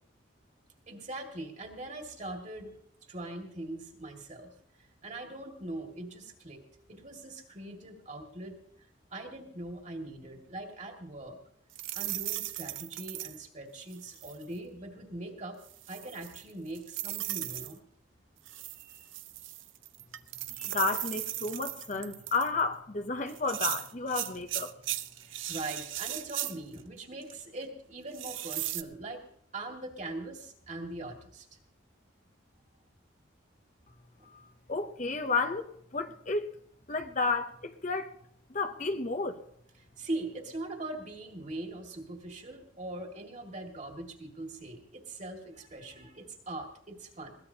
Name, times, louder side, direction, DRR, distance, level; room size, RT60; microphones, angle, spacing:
voice 1, 0.9-2.8 3.1-4.5 4.8-6.6 6.9-8.6 9.1-11.4 11.9-15.6 15.9-17.8 18.5-19.1 25.2-29.2 29.5-31.5 40.0-47.4, right 2 dB, 35° right, 2.2 m, -41 dB
sound 1, 11.7-13.4 13.9-14.4 15.6-17.7 18.5-22.6 23.3-26.8 27.2-27.3 28.1-28.8, right 14 dB, 80° right, 0.7 m, -37 dB
voice 2, 20.6-24.7 34.3-34.4 34.7-35.6 35.9-36.5 36.9-38.1 38.5-39.4, left 3 dB, 40° left, 0.8 m, -31 dB
21.5 x 17.5 x 2.9 m
head